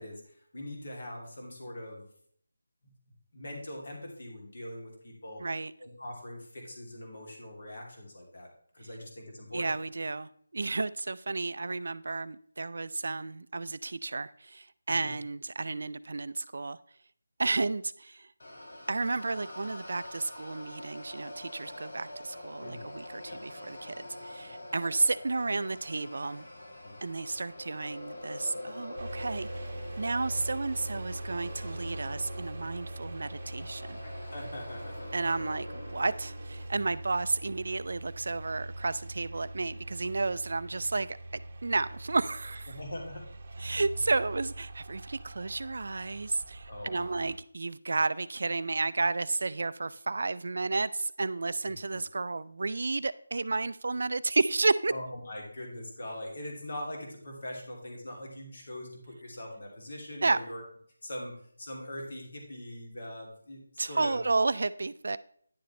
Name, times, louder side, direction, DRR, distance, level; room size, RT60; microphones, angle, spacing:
voice 1, 0.0-2.1 3.3-5.4 5.8-8.5 8.7-9.8 14.9-15.1 22.6-22.9 23.3-23.4 26.8-27.0 34.0-35.1 42.7-43.2 46.7-47.2 51.6-52.0 54.9-60.6 61.0-64.3, left 1 dB, 45° left, 0 dB, 2.8 m, -42 dB
voice 2, 5.4-5.7 9.5-16.8 17.4-18.3 18.9-26.5 27.0-29.7 30.0-34.0 35.1-42.7 43.6-54.9 60.2-60.4 63.8-65.2, right 3 dB, 55° right, 16 dB, 0.4 m, -32 dB
sound 1, 18.4-36.7, left 1 dB, 65° left, 2.8 m, -45 dB
sound 2, 28.9-47.4, right 2 dB, 30° right, 1.0 m, -42 dB
10.5 x 6.9 x 3.2 m, 0.62 s
figure-of-eight pair, 175°, 0 cm